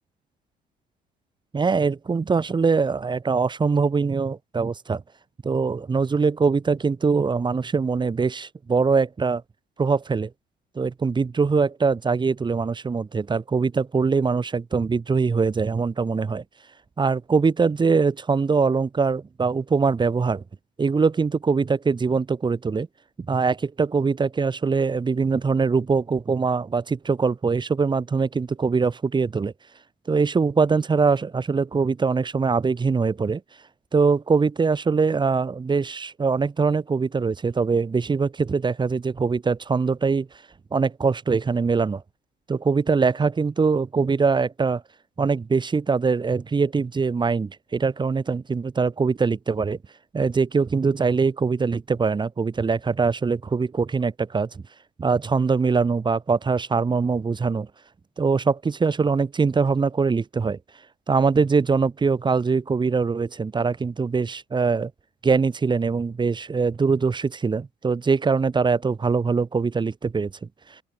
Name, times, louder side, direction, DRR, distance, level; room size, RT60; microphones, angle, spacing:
voice 1, 1.5-5.0 5.4-9.4 9.8-10.3 10.7-16.4 17.0-20.4 20.8-22.9 23.3-29.5 30.1-33.4 33.9-40.3 40.7-42.0 42.5-44.8 45.2-49.8 50.1-54.5 55.0-57.7 58.2-60.6 61.1-64.9 65.2-70.5, right 4 dB, 25° right, 6.1 m, -22 dB
open air
cardioid pair, 110°, 17 cm